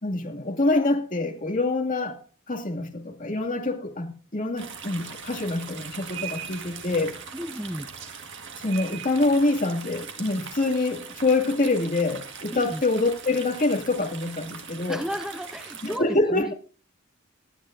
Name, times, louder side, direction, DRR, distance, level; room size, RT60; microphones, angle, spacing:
voice 1, 0.0-2.2 2.5-7.1 8.6-15.0 15.8-16.5, left 2 dB, 40° left, 2.3 m, -25 dB
sound 1, 4.6-16.0, right 7 dB, 60° right, 1.7 m, -40 dB
voice 2, 7.3-7.9 12.5-12.8 14.9-16.5, equal, 5° right, 0.5 m, -33 dB
25.5 x 9.6 x 2.6 m
head